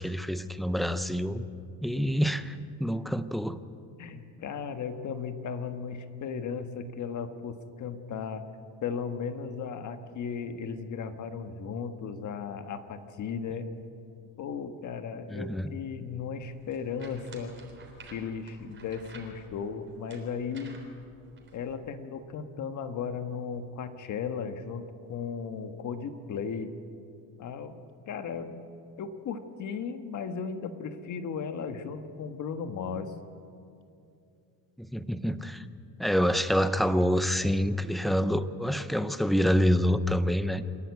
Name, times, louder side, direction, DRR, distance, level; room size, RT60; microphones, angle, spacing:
voice 1, 0.0-1.5 1.8-3.6 15.3-15.7 34.8-35.6 36.0-40.6, equal, ahead, 12 dB, 0.5 m, -27 dB
voice 2, 4.0-8.4 8.8-13.7 14.4-17.5 18.1-20.8 21.5-24.8 25.1-26.7 27.4-27.8 28.1-28.6 29.0-33.1, left 6 dB, 45° left, 8 dB, 1.5 m, -36 dB
sound 1, 16.4-21.7, right 3 dB, 30° right, 3.6 m, -52 dB
27.5 x 11.0 x 9.6 m, 2.6 s
cardioid pair, 135°, 41 cm